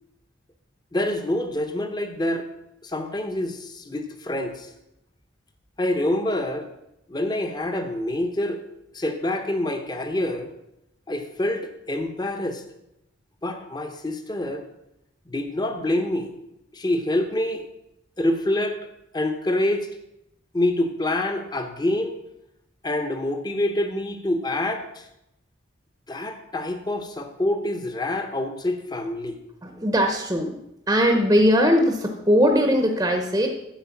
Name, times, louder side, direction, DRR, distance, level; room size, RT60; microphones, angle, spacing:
voice 1, 0.9-2.5 2.8-4.7 5.8-6.7 7.1-8.6 8.9-10.5 11.1-12.6 13.4-14.6 15.3-16.3 16.7-17.6 18.2-18.8 19.1-19.9 20.5-22.2 22.8-25.1 26.1-29.4, left 1 dB, 20° left, 7 dB, 0.9 m, -26 dB
voice 2, 29.6-30.6 30.9-33.5, equal, 15° right, 3 dB, 0.8 m, -20 dB
10.0 x 7.9 x 5.9 m, 0.85 s
head